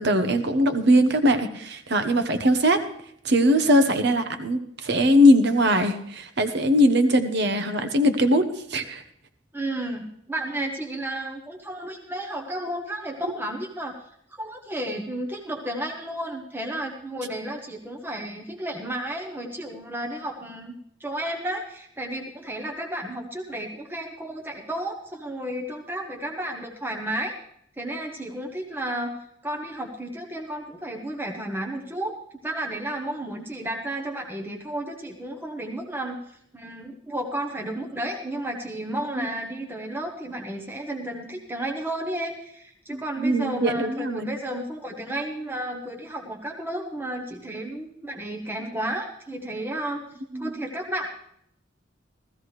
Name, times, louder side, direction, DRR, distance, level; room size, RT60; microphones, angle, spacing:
voice 1, 0.0-2.8 3.2-9.0 42.9-44.3 50.3-50.5, equal, 60° right, 9 dB, 1.1 m, -21 dB
voice 2, 9.5-13.9 14.4-20.7 21.0-27.3 27.8-29.2 29.4-32.1 32.4-36.2 36.5-50.0 50.4-51.1, right 1 dB, 10° right, 2 dB, 0.9 m, -32 dB
16.0 x 14.5 x 3.2 m, 0.69 s
head